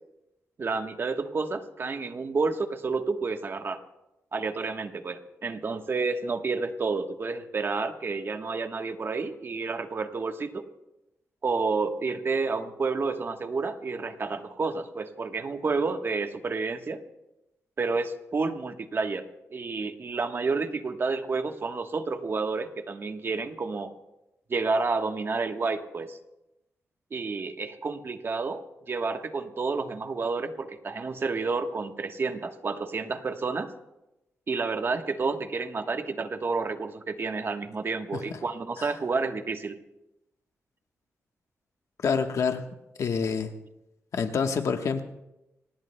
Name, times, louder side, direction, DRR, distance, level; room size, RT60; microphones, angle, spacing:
voice 1, 0.6-3.8 4.3-10.7 11.4-17.0 17.8-19.3 19.5-23.9 24.5-26.2 27.1-28.6 28.9-33.7 34.5-39.8, right 4 dB, 45° right, 6 dB, 1.2 m, -30 dB
voice 2, 42.0-42.6 43.0-43.5 44.1-45.0, left 6 dB, 70° left, 6 dB, 1.2 m, -27 dB
25.0 x 19.0 x 2.2 m, 0.93 s
cardioid pair, 100°, 5 cm